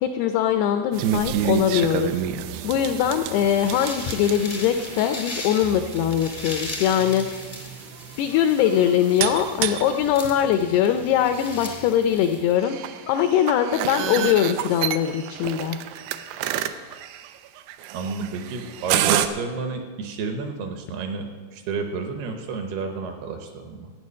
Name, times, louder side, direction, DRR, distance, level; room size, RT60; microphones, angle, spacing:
voice 1, 0.0-2.2 2.6-7.3 8.2-12.8 13.1-15.8, left 9 dB, 85° left, 7 dB, 2.3 m, -22 dB
sound 1, 0.9-19.3, right 11 dB, 90° right, 2.3 m, -30 dB
sound 2, 3.1-12.6, left 2 dB, 40° left, 0.6 m, -38 dB
voice 2, 17.9-21.3 21.5-23.9, right 4 dB, 75° right, 5 dB, 2.6 m, -30 dB
14.0 x 9.2 x 6.4 m, 1.5 s
omnidirectional pair, 5.3 m